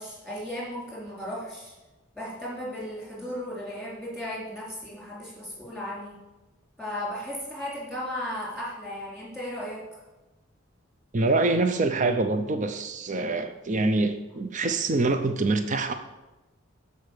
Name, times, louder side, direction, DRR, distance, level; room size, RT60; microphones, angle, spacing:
voice 1, 0.0-1.7 2.1-6.1 6.8-9.8, left 1 dB, ahead, -5 dB, 4.3 m, -35 dB
voice 2, 11.1-15.9, right 3 dB, 35° right, 8 dB, 0.7 m, -25 dB
13.0 x 5.4 x 6.6 m, 1.1 s
head